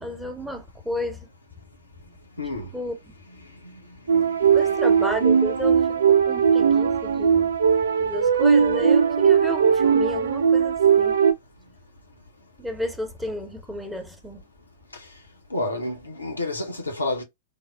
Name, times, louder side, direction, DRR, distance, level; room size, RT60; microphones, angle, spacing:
voice 1, 0.0-1.3 2.5-3.2 4.4-7.5 8.0-11.2 12.6-14.4, equal, 5° right, 0.8 m, -32 dB
voice 2, 2.4-2.7 4.1-4.4 15.5-17.2, left 2 dB, 85° left, 0.7 m, -29 dB
sound 1, 4.1-11.3, right 7 dB, 70° right, 0.3 m, -19 dB
3.4 x 2.0 x 2.2 m
figure-of-eight pair, 95°, 0 cm